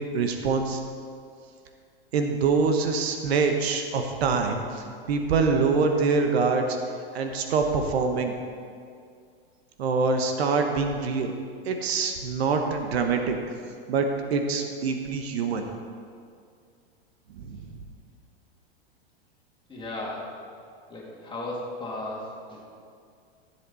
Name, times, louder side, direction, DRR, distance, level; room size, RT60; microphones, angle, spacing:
voice 1, 0.1-0.8 2.1-6.8 7.1-8.3 9.8-11.3 11.6-13.4 13.9-15.6 17.3-17.7, right 4 dB, 75° right, 4 dB, 1.3 m, -25 dB
voice 2, 19.7-20.4 20.9-22.6, left 1 dB, 15° left, -4 dB, 2.8 m, -35 dB
14.5 x 7.7 x 4.2 m, 2.3 s
hypercardioid pair, 120°, 31 cm